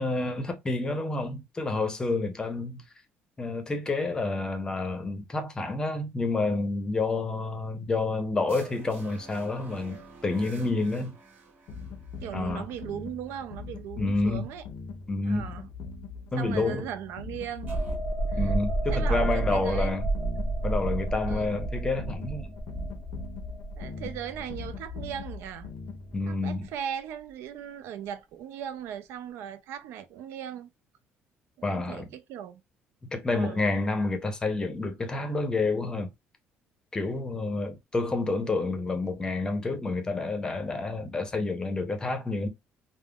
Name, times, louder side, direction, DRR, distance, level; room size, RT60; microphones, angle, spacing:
voice 1, 0.0-2.8 3.4-11.1 12.3-12.7 14.0-14.5 15.1-15.5 16.3-16.9 18.4-20.0 20.6-22.5 26.1-26.7 31.6-32.1 33.1-36.1 36.9-42.5, left 3 dB, 20° left, 0.7 m, -29 dB
sound 1, 8.5-12.9 17.7-18.0, right 3 dB, 40° right, 1.1 m, -50 dB
sound 2, 11.7-26.3, left 5 dB, 60° left, 0.5 m, -41 dB
voice 2, 12.2-14.6 15.2-15.7 16.4-17.8 18.3-18.5 18.9-20.0 21.3-21.6 23.8-25.7 26.3-30.7 31.6-32.6 33.3-33.7, right 9 dB, 75° right, 0.4 m, -38 dB
sound 3, 17.6-25.1 25.4-25.6, right 2 dB, 15° right, 0.7 m, -30 dB
3.5 x 2.0 x 2.2 m
cardioid pair, 145°, 4 cm